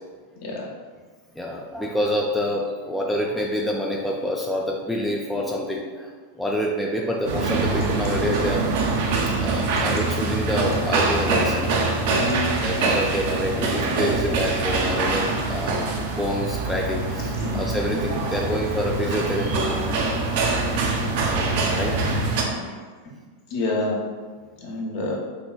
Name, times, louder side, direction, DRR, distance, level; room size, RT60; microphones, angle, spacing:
voice 1, 1.4-6.1 6.4-8.6 9.4-19.8 21.2-22.0, left 1 dB, 5° left, -2 dB, 0.3 m, -27 dB
sound 1, 7.3-22.4, right 3 dB, 50° right, 0.5 m, -24 dB
voice 2, 12.1-12.5 17.4-17.6 17.9-18.0 22.5-22.6 23.5-24.0 24.6-25.2, left 2 dB, 45° left, -2 dB, 0.8 m, -27 dB
sound 2, 14.3-22.6, right 1 dB, 75° right, 0.9 m, -40 dB
4.6 x 3.0 x 2.3 m, 1.5 s
figure-of-eight pair, 90°, 0 cm